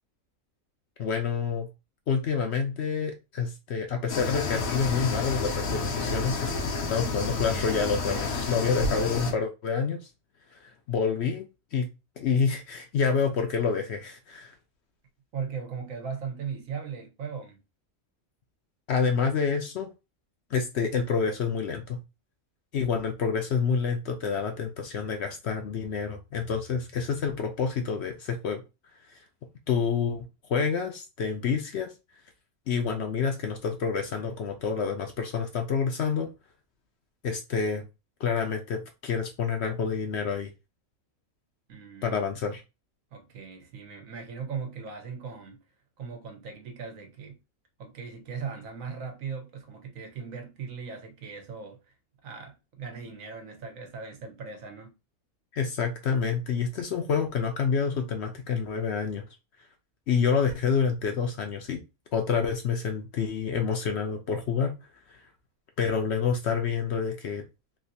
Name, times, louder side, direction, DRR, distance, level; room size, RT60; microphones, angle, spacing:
voice 1, 1.0-1.7 2.1-6.5 6.9-10.0 10.6-11.4 11.7-11.9 12.2-14.5 18.9-19.9 20.5-22.0 22.7-28.6 29.7-31.9 32.7-36.3 37.2-37.8 38.2-40.5 42.0-42.6 55.5-59.2 60.1-61.8 62.1-64.7 65.8-67.4, left 6 dB, 65° left, 0.7 m, -28 dB
sound 1, 4.1-9.3, left 3 dB, 90° left, 1.2 m, -30 dB
voice 2, 15.3-17.6 41.7-42.3 43.1-45.6 46.0-47.4 47.8-51.8 52.2-54.9, right 6 dB, 75° right, 1.2 m, -38 dB
3.2 x 2.6 x 2.6 m
omnidirectional pair, 1.4 m